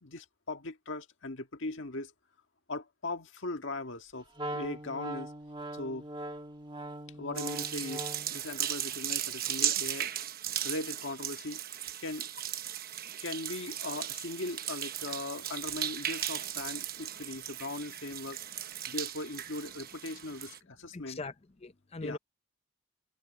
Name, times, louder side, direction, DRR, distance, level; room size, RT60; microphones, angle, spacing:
voice 1, 0.0-2.1 2.7-5.3 5.7-6.1 7.1-10.1 10.6-11.6 12.0-12.3 13.2-18.4 18.9-21.2 22.0-22.2, left 2 dB, 65° left, 1.7 m, -39 dB
Wind instrument woodwind instrument, 4.4-8.4, right 1 dB, 20° right, 1.5 m, -40 dB
sound 1, 7.3-20.6, right 11 dB, 45° right, 1.1 m, -36 dB
voice 2, 20.9-21.3 21.6-22.2, left 3 dB, 30° left, 0.6 m, -40 dB
head